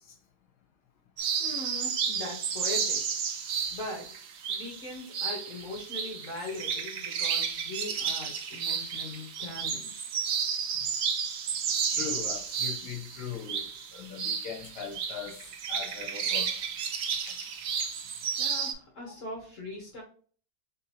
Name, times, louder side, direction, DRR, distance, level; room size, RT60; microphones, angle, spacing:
sound 1, 1.2-18.7, right 6 dB, 65° right, 1.0 m, -32 dB
voice 1, 1.4-3.1 3.7-4.2 4.5-10.0 18.4-20.0, left 2 dB, 50° left, 1.3 m, -40 dB
voice 2, 11.9-15.4 15.7-16.5 17.3-17.4 17.8-17.9, left 7 dB, 70° left, 1.4 m, -40 dB
3.8 x 2.8 x 4.2 m
omnidirectional pair, 1.8 m